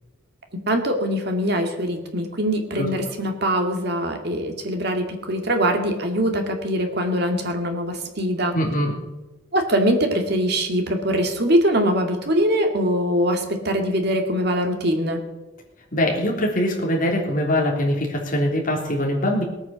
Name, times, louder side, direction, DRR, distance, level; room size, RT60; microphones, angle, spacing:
voice 1, 0.7-8.6 9.5-15.2, equal, 50° right, 4 dB, 2.1 m, -22 dB
voice 2, 8.5-8.9 15.9-19.4, left 1 dB, 40° left, -1 dB, 3.4 m, -22 dB
18.5 x 9.0 x 7.0 m, 1.1 s
head